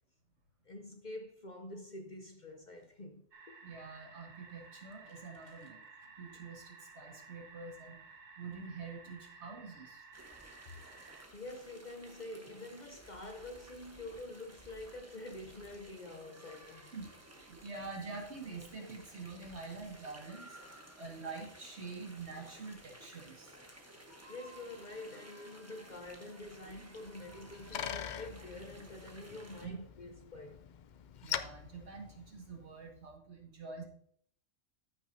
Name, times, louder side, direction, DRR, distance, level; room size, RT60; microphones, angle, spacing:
voice 1, 0.6-3.6 5.4-5.5 9.1-9.2 11.3-16.9 24.3-30.7, left 2 dB, 45° left, 0.8 m, -47 dB
sound 1, 3.3-11.2, right 4 dB, 85° right, 1.6 m, -55 dB
voice 2, 3.6-5.8 6.2-8.0 8.4-10.0 16.9-23.6 29.6-29.8 31.2-33.8, right 4 dB, 60° right, 2.2 m, -46 dB
sound 2, 10.1-29.7, right 1 dB, 15° right, 1.1 m, -55 dB
Bicycle, 27.1-32.8, left 9 dB, 75° left, 0.4 m, -44 dB
14.0 x 6.2 x 2.7 m
omnidirectional pair, 1.3 m